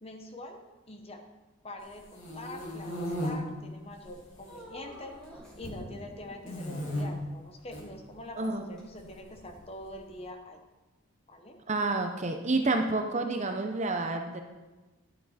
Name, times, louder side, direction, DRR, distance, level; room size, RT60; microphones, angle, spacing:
voice 1, 0.0-1.2 1.6-10.6 11.3-11.6, left 1 dB, 25° left, 5 dB, 0.9 m, -45 dB
sound 1, 1.9-3.3 4.0-4.6 4.9-5.8 6.4-7.0 7.6-7.8 9.0-9.9, equal, 60° left, 2.3 m, -36 dB
sound 2, 4.5-5.6 6.0-6.9 8.4-8.8 9.5-9.6, equal, 5° left, 2.4 m, -49 dB
voice 2, 8.4-8.7 11.7-14.4, right 2 dB, 30° right, 5 dB, 0.8 m, -29 dB
11.5 x 8.6 x 4.3 m, 1.2 s
head